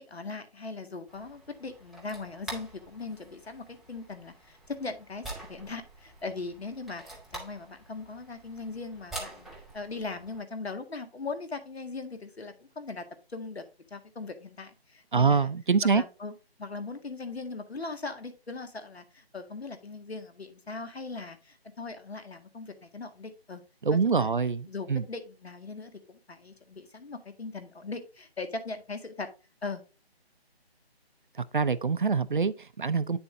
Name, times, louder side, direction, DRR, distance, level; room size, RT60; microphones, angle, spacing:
voice 1, 0.0-9.5 9.7-13.6 13.9-15.5 15.9-16.3 16.6-23.6 23.9-24.3 24.7-29.3 29.6-29.8, left 3 dB, 75° left, 1.9 m, -39 dB
sound 1, 1.1-10.4, right 2 dB, ahead, 0.5 m, -46 dB
voice 2, 15.1-16.0 23.8-25.0 31.4-33.2, right 5 dB, 50° right, 0.6 m, -25 dB
8.9 x 6.9 x 2.6 m
figure-of-eight pair, 170°, 32 cm